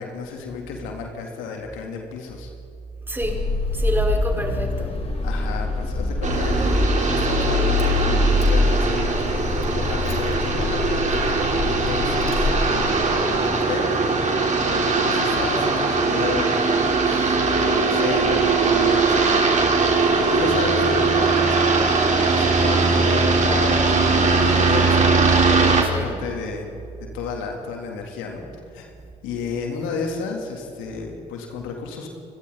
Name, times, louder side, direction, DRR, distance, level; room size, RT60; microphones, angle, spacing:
voice 1, 0.0-2.5 5.2-11.0 11.3-13.9 14.6-16.5 17.0-19.7 20.3-21.9 22.2-25.1 25.6-26.7 27.1-28.4 28.7-28.9 29.2-32.1, left 5 dB, 70° left, 1 dB, 3.6 m, -32 dB
voice 2, 3.1-5.1 25.8-26.2, right 1 dB, 10° right, 1 dB, 5.0 m, -28 dB
Car / Engine starting, 3.2-13.3, left 2 dB, 30° left, 3.7 m, -24 dB
sound 1, 6.2-25.8, right 4 dB, 35° right, 4.3 m, -20 dB
29.5 x 23.0 x 4.3 m, 2.5 s
hypercardioid pair, 50°, 21 cm